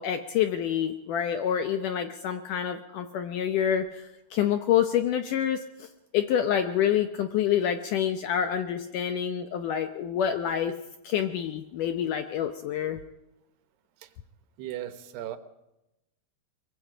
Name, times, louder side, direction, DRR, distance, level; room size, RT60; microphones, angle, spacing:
voice 1, 0.0-4.0 4.3-5.9 6.1-10.7 11.0-13.0, left 9 dB, 75° left, 7 dB, 1.9 m, -27 dB
voice 2, 14.6-15.4, right 12 dB, 85° right, 9 dB, 3.3 m, -36 dB
23.5 x 22.5 x 5.0 m, 0.92 s
omnidirectional pair, 4.6 m